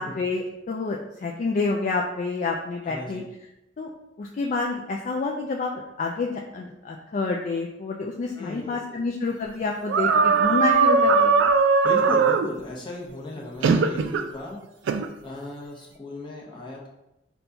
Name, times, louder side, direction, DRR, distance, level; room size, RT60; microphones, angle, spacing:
voice 1, 0.0-3.2 3.8-3.9 4.2-5.7 6.0-11.3, left 3 dB, 40° left, 0 dB, 0.3 m, -28 dB
voice 2, 2.8-3.2 8.3-9.0 11.8-14.6 15.2-16.9, left 2 dB, 25° left, -3 dB, 0.8 m, -36 dB
sound 1, 9.9-12.5 13.6-14.3 14.9-15.1, right 4 dB, 75° right, 0.3 m, -19 dB
5.8 x 2.2 x 2.6 m, 0.91 s
head